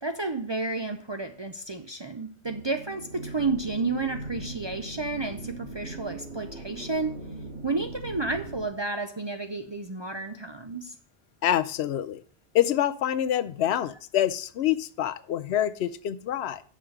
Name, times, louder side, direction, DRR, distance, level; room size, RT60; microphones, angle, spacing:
voice 1, 0.0-7.2 7.6-11.0, right 3 dB, 35° right, 0.4 m, -31 dB
sound 1, 2.4-8.7, right 2 dB, 80° right, 3.8 m, -40 dB
voice 2, 11.4-12.2 12.5-16.6, left 11 dB, 75° left, 0.8 m, -26 dB
6.6 x 5.0 x 7.0 m
omnidirectional pair, 1.1 m